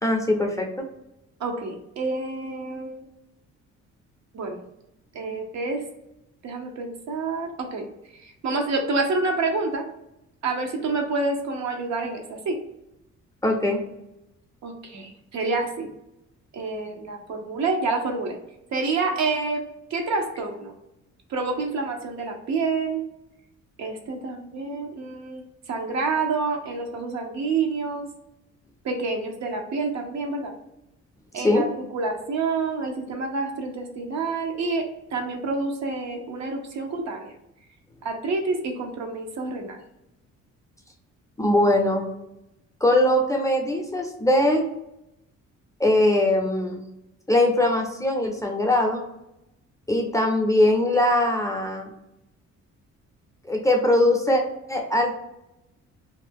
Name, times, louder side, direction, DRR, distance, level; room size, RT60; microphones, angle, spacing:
voice 1, 0.0-0.9 13.4-13.8 31.4-31.7 41.4-42.1 42.8-44.7 45.8-46.8 47.3-49.0 49.9-51.9 53.5-54.4 54.7-55.1, left 1 dB, 10° left, 1 dB, 0.5 m, -21 dB
voice 2, 1.4-3.0 4.3-4.6 5.1-5.8 6.4-7.9 8.2-9.8 10.4-12.6 14.6-15.9 16.5-18.4 18.7-19.6 19.9-20.7 21.3-23.0 23.8-25.4 25.7-28.1 28.8-30.5 31.3-31.7 31.9-37.3 38.0-39.8, right 3 dB, 65° right, 3 dB, 0.7 m, -28 dB
2.6 x 2.0 x 3.4 m, 0.87 s
cardioid pair, 90°, 30 cm